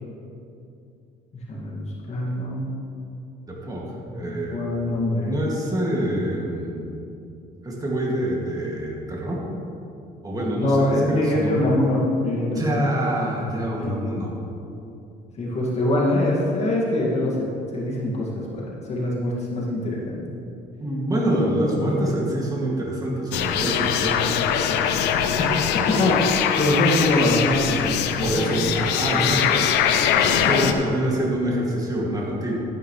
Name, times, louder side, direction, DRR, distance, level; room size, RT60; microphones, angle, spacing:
voice 1, 1.5-2.7 4.2-5.3 10.6-12.9 13.8-13.9 15.4-17.4 17.7-20.2 21.3-22.1 25.4-25.5 26.0-26.2 26.6-28.8 29.1-29.5, left 1 dB, 40° left, -4 dB, 2.1 m, -24 dB
voice 2, 3.5-4.7 5.2-6.9 7.6-9.5 10.2-11.6 12.5-14.3 20.8-24.4 28.2-29.6 30.1-32.6, right 1 dB, 20° right, -3 dB, 2.2 m, -26 dB
sound 1, 23.3-30.7, left 8 dB, 90° left, 0.6 m, -22 dB
12.0 x 10.5 x 3.2 m, 2.7 s
cardioid pair, 110°, 17 cm